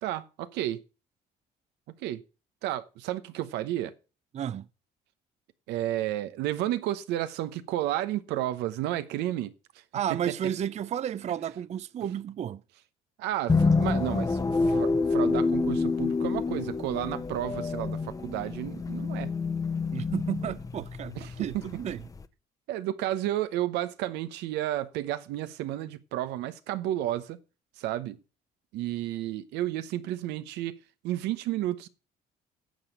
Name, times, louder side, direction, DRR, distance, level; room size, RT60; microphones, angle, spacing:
voice 1, 0.0-0.8 2.0-2.2 2.6-3.9 5.7-9.5 10.1-10.3 13.2-19.3 21.2-21.6 22.7-27.4 27.8-28.2 28.7-30.7 31.0-31.9, right 13 dB, 90° right, 0.9 m, -32 dB
voice 2, 4.3-4.7 9.9-12.6 19.9-22.0, right 9 dB, 40° right, 0.5 m, -32 dB
sound 1, 13.5-22.2, left 4 dB, 20° left, 0.8 m, -28 dB
10.5 x 7.3 x 6.5 m
cardioid pair, 110°, 17 cm